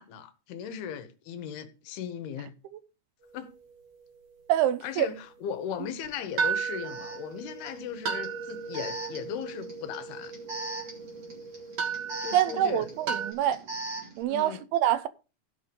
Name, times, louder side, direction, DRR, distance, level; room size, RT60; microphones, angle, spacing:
voice 1, 0.0-2.5 3.3-3.5 4.8-10.3 12.2-12.9 14.3-14.6, left 8 dB, 80° left, 3.0 m, -37 dB
sound 1, 3.2-4.9 5.2-5.3 6.4-13.3, right 6 dB, 60° right, 3.9 m, -35 dB
voice 2, 4.5-5.1 12.3-13.6 14.2-15.1, right 12 dB, 80° right, 2.7 m, -25 dB
Alarm, 6.0-6.1 6.8-14.2, right 3 dB, 30° right, 3.2 m, -41 dB
15.5 x 5.6 x 5.1 m
omnidirectional pair, 4.5 m